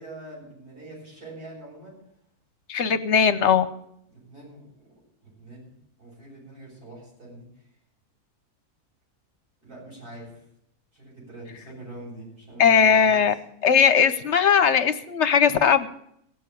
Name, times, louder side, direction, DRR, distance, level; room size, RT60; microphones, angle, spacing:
voice 1, 0.0-1.9 4.1-4.8 5.2-5.7 6.0-7.4 9.6-10.3 10.9-13.2, right 1 dB, 85° right, -5 dB, 8.6 m, -43 dB
voice 2, 2.7-3.7 12.6-13.3 13.6-15.9, left 7 dB, 55° left, 12 dB, 1.0 m, -19 dB
16.5 x 7.0 x 9.1 m, 0.72 s
omnidirectional pair, 1.6 m